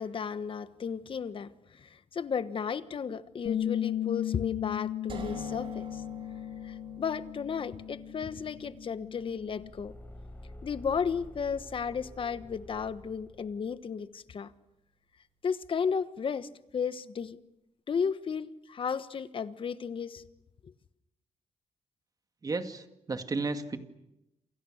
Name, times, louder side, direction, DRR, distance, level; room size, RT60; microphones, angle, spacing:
voice 1, 0.0-6.0 6.6-9.9 10.6-14.5 15.4-17.4 17.9-20.2, left 6 dB, 45° left, 13 dB, 1.3 m, -34 dB
Bass guitar, 3.5-9.7, left 11 dB, 75° left, 1.9 m, -36 dB
sound 1, 5.1-14.9, right 4 dB, 50° right, 4.5 m, -51 dB
Car / Engine, 9.2-13.8, left 1 dB, 15° left, 4.3 m, -49 dB
voice 2, 22.4-23.8, right 3 dB, 30° right, 7 dB, 2.2 m, -33 dB
28.5 x 28.0 x 6.6 m, 0.89 s
cardioid pair, 100°, 12 cm